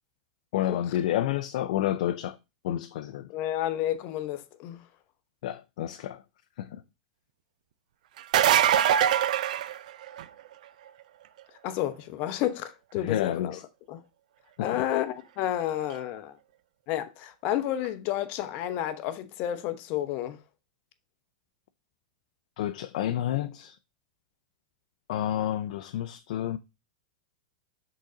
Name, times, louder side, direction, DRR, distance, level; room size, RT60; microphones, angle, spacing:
voice 1, 0.5-2.4 2.6-3.3 5.4-6.2 6.6-6.8 13.0-13.6 14.6-14.8 22.6-23.8 25.1-26.6, left 12 dB, 70° left, 0.5 m, -30 dB
voice 2, 3.3-4.8 11.6-13.6 13.9-14.0 14.6-16.4 16.9-20.4, left 12 dB, 45° left, 0.9 m, -31 dB
sound 1, 8.2-10.4 15.9-16.0 17.8-17.9, right 10 dB, 75° right, 0.5 m, -23 dB
6.3 x 3.9 x 5.0 m
supercardioid pair, 130°, 4 cm